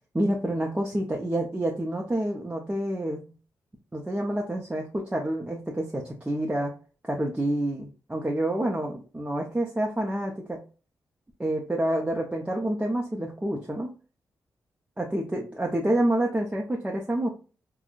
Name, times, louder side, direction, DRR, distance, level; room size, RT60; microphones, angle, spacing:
voice 1, 0.1-3.2 3.9-6.7 7.0-10.6 11.4-13.9 15.0-17.3, right 1 dB, 15° right, -1 dB, 0.7 m, -28 dB
3.6 x 2.2 x 2.5 m, 0.35 s
supercardioid pair, 50°, 8 cm